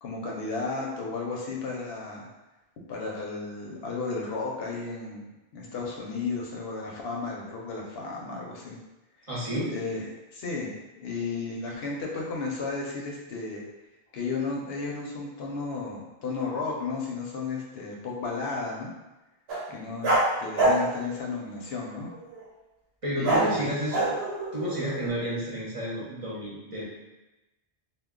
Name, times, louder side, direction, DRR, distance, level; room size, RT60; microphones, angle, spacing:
voice 1, 0.0-2.3 2.9-5.3 5.5-8.8 9.7-10.0 10.3-13.6 14.1-18.9 19.7-22.1 23.1-23.7, left 4 dB, 75° left, -2 dB, 0.8 m, -33 dB
voice 2, 9.3-9.7 23.0-24.1 24.5-26.8, equal, 40° right, -7 dB, 0.7 m, -31 dB
sound 1, 19.5-19.7 20.0-21.1 22.1-22.4 23.2-23.6 23.9-25.1, right 2 dB, 75° right, 0.9 m, -25 dB
2.1 x 2.1 x 3.6 m, 1.0 s
omnidirectional pair, 1.0 m